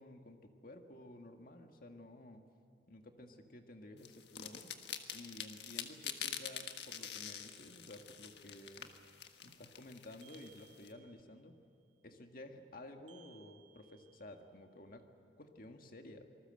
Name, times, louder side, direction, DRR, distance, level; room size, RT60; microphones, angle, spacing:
voice 1, 0.0-2.5 2.9-4.7 5.1-8.9 9.4-11.6 12.0-15.1 15.4-16.3, left 1 dB, 50° left, 4 dB, 1.8 m, -53 dB
sound 1, 4.0-10.9, left 9 dB, 65° left, 1.6 m, -46 dB
sound 2, 7.4-8.4 10.2-11.5 13.1-14.6, right 12 dB, 85° right, 3.0 m, -66 dB
26.5 x 19.5 x 7.8 m, 2.5 s
head